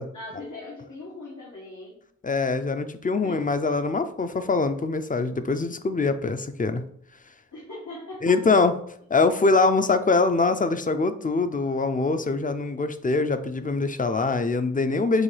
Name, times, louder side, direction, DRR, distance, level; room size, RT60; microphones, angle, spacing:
voice 1, 0.1-2.0 3.2-3.6 4.2-4.4 7.5-8.6, left 2 dB, 75° left, -6 dB, 1.2 m, -40 dB
voice 2, 2.2-6.8 8.2-8.7 9.1-15.2, left 3 dB, 30° left, 10 dB, 0.4 m, -23 dB
6.2 x 2.3 x 3.2 m, 0.67 s
wide cardioid pair, 50°, 30 cm